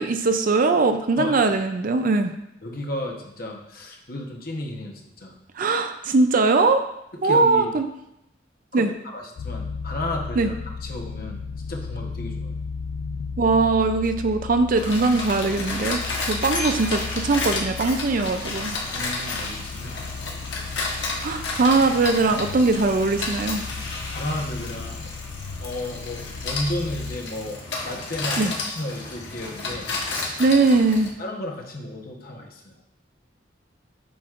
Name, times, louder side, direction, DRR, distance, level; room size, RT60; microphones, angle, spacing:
voice 1, 0.0-2.3 5.6-6.8 7.2-7.9 8.7-8.9 10.4-10.5 13.4-18.8 21.2-23.6 28.4-28.5 30.4-31.1, right 3 dB, 45° right, 8 dB, 0.4 m, -21 dB
voice 2, 2.6-5.3 7.2-7.8 8.7-10.5 10.8-11.4 11.7-12.5 16.3-16.5 18.9-20.4 23.8-25.0 25.6-29.9 31.2-32.7, left 1 dB, 50° left, 1 dB, 1.1 m, -33 dB
sound 1, 9.4-27.2, left 5 dB, 90° left, 0.4 m, -35 dB
sound 2, 14.8-31.1, left 3 dB, 70° left, 1.3 m, -31 dB
7.7 x 6.0 x 2.5 m, 0.83 s
head